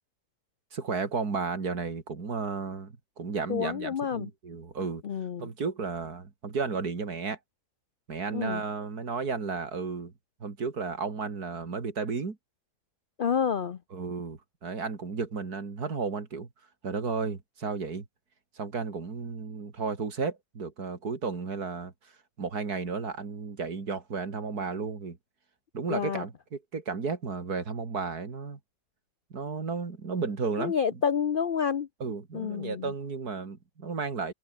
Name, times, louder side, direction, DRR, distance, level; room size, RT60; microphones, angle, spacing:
voice 1, 0.7-5.0 5.4-7.4 8.1-10.1 10.4-12.4 13.9-16.5 16.8-18.1 18.6-21.9 22.4-25.2 25.7-28.6 29.3-30.7 32.0-34.3, right 4 dB, 60° right, 3.1 m, -33 dB
voice 2, 3.5-4.3 5.0-5.5 8.3-8.6 13.2-13.8 25.9-26.2 30.6-31.9 32.3-32.9, left 7 dB, 85° left, 0.4 m, -29 dB
omnidirectional pair, 1.8 m